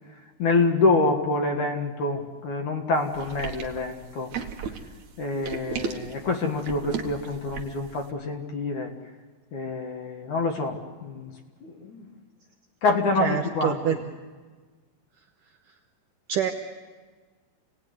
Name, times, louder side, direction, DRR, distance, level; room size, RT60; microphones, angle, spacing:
voice 1, 0.4-4.3 4.6-4.7 5.2-8.9 9.5-11.3 11.6-12.1 12.8-14.0, left 3 dB, 55° left, 3 dB, 2.6 m, -26 dB
sound 1, 3.1-7.9, right 6 dB, 60° right, 2.3 m, -35 dB
voice 2, 13.2-14.0 16.3-16.5, right 8 dB, 75° right, 4 dB, 2.0 m, -25 dB
28.0 x 18.5 x 9.6 m, 1.4 s
omnidirectional pair, 4.9 m